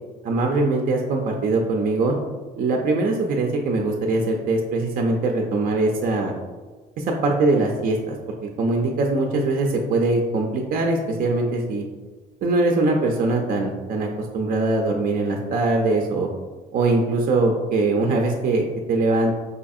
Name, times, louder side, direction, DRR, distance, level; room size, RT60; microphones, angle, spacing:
voice 1, 0.2-2.1 2.6-6.3 7.0-8.1 8.6-11.9 12.4-14.1 14.3-16.3 16.7-19.3, right 2 dB, 55° right, 2 dB, 0.5 m, -22 dB
4.9 x 2.6 x 2.4 m, 1.3 s
cardioid pair, 110°, 17 cm